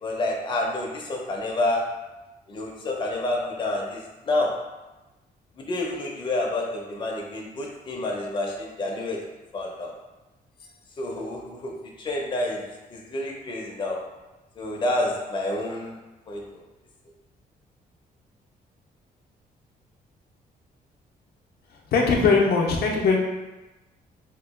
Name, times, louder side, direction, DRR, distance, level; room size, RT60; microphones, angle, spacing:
voice 1, 0.0-2.0 2.5-4.7 5.6-9.2 9.5-9.9 11.0-14.1 14.6-16.0 16.3-16.7, left 2 dB, 30° left, -1 dB, 0.5 m, -29 dB
voice 2, 21.7-23.2, left 4 dB, 75° left, 0 dB, 0.6 m, -21 dB
2.9 x 2.2 x 3.5 m, 1.1 s
cardioid pair, 105°, 16 cm